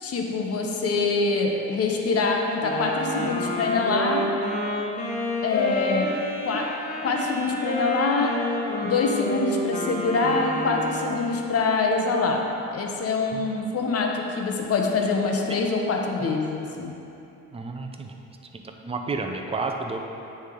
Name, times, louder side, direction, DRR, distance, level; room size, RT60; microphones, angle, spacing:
voice 1, 0.0-4.3 5.4-6.1 6.4-6.7 7.0-8.3 8.8-12.4 12.7-16.9, left 4 dB, 50° left, 1 dB, 0.8 m, -24 dB
Wind instrument woodwind instrument, 2.6-11.2, left 1 dB, 25° left, 1.3 m, -30 dB
voice 2, 17.5-18.1 18.5-20.0, right 3 dB, 20° right, 3 dB, 0.6 m, -31 dB
9.4 x 3.4 x 3.7 m, 2.9 s
cardioid pair, 90°, 30 cm